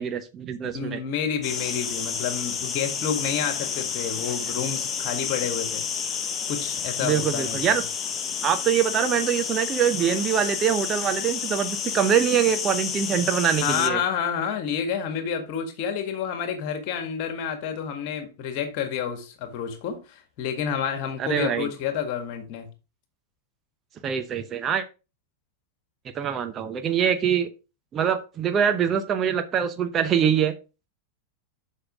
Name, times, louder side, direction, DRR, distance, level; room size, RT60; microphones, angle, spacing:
voice 1, 0.0-1.0 7.0-7.8 8.4-14.0 21.2-21.7 24.0-24.8 26.1-27.5 27.9-30.5, right 8 dB, 25° right, 0.8 m, -24 dB
voice 2, 0.7-6.2 6.5-7.8 13.6-22.7, left 7 dB, 45° left, 1.8 m, -29 dB
sound 1, 1.4-13.9, left 7 dB, 25° left, 0.9 m, -30 dB
7.8 x 5.6 x 3.6 m
figure-of-eight pair, 90°, 0 cm